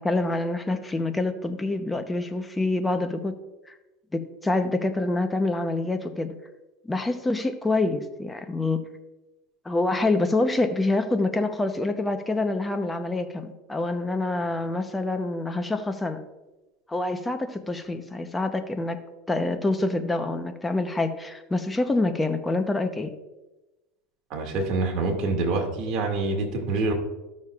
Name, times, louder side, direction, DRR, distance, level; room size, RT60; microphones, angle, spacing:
voice 1, 0.0-3.3 4.1-6.3 6.8-8.8 9.6-16.2 16.9-19.0 19.3-23.1, left 2 dB, 10° left, 7 dB, 0.8 m, -26 dB
voice 2, 24.3-26.9, right 3 dB, 50° right, 1 dB, 2.1 m, -26 dB
14.5 x 6.4 x 2.4 m, 1.1 s
supercardioid pair, 115°, 0 cm